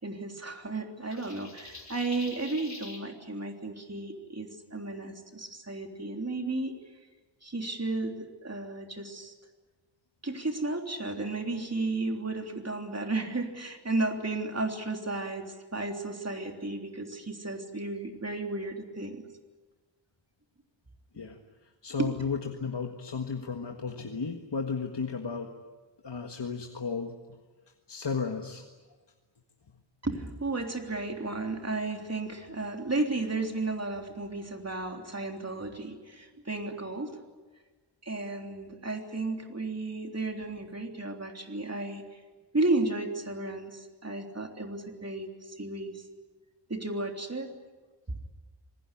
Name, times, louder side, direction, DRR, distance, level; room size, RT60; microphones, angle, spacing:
voice 1, 0.0-6.7 7.4-9.3 10.2-19.2 22.0-22.1 30.0-37.2 38.0-42.2 42.5-46.1 46.7-47.5, right 2 dB, 35° right, 3 dB, 3.4 m, -33 dB
sound 1, 1.1-3.0, left 2 dB, 40° left, 4.0 m, -45 dB
voice 2, 21.8-25.5 26.0-27.2 27.9-28.6, left 5 dB, 70° left, 3 dB, 1.8 m, -34 dB
27.0 x 19.5 x 10.0 m, 1.3 s
wide cardioid pair, 80°, 44 cm